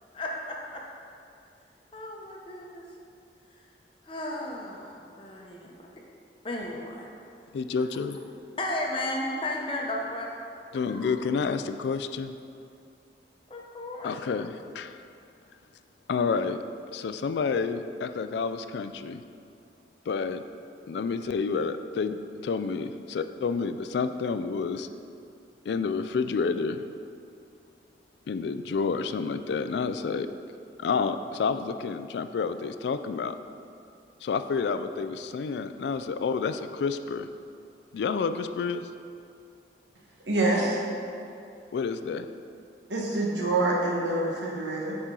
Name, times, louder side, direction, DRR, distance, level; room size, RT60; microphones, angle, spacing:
voice 1, 0.1-0.8 1.9-2.8 4.0-5.9 6.4-7.1 8.6-10.3 10.7-11.3 13.5-14.1, left 1 dB, 30° left, -1 dB, 0.8 m, -34 dB
voice 2, 7.5-8.2 10.7-12.3 14.0-15.0 16.1-16.6 16.9-19.2 20.1-20.4 20.9-24.9 25.7-26.8 28.3-30.3 30.8-33.4 34.2-37.3 37.9-38.9 41.7-42.3, left 5 dB, 70° left, 10 dB, 0.3 m, -29 dB
voice 3, 40.3-40.9 42.9-44.9, right 2 dB, 85° right, -3 dB, 1.3 m, -26 dB
9.1 x 4.3 x 3.8 m, 2.5 s
head